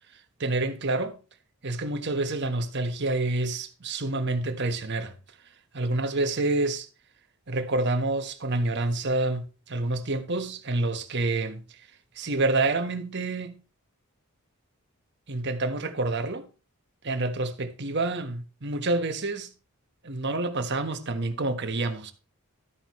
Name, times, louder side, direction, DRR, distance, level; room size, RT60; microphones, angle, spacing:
voice 1, 0.4-1.2 1.6-5.1 5.7-6.9 7.5-11.8 12.1-13.5 15.3-16.4 17.0-19.5 20.0-22.1, right 2 dB, 50° right, 1.4 m, -28 dB
13.0 x 8.9 x 3.2 m
head